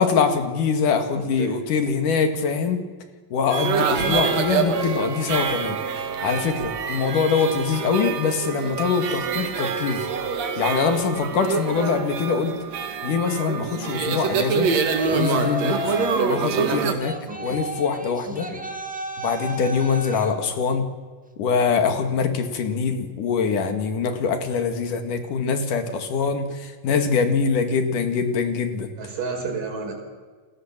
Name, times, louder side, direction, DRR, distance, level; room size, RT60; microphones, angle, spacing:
voice 1, 0.0-2.8 3.3-5.8 6.2-10.1 10.6-12.5 13.0-14.7 15.1-16.0 16.3-17.1 17.4-18.5 19.2-20.9 21.4-28.9, left 5 dB, 75° left, 7 dB, 3.7 m, -23 dB
voice 2, 1.2-1.6 3.9-4.3 15.8-16.1 17.3-17.6 18.3-18.7 29.0-29.9, right 4 dB, 90° right, 3 dB, 6.5 m, -32 dB
sound 1, 3.5-16.9, right 6 dB, 55° right, 2.9 m, -26 dB
Yell, 15.0-16.3 17.0-20.4, equal, 5° right, 1.4 m, -32 dB
29.5 x 20.5 x 7.5 m, 1.5 s
omnidirectional pair, 3.7 m